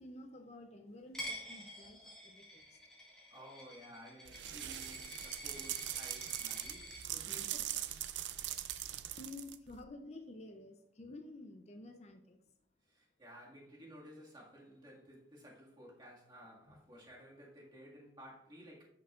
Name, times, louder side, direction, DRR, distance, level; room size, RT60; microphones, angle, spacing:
voice 1, 0.0-2.8 9.2-12.4 16.7-16.8, left 2 dB, 40° left, 0.5 m, -51 dB
Coin (dropping), 1.1-7.0, equal, 5° left, 1.9 m, -48 dB
voice 2, 3.3-7.9 12.9-18.8, equal, 25° right, 1.8 m, -55 dB
sound 1, 4.3-9.8, right 12 dB, 85° right, 0.4 m, -41 dB
10.5 x 5.9 x 2.4 m
head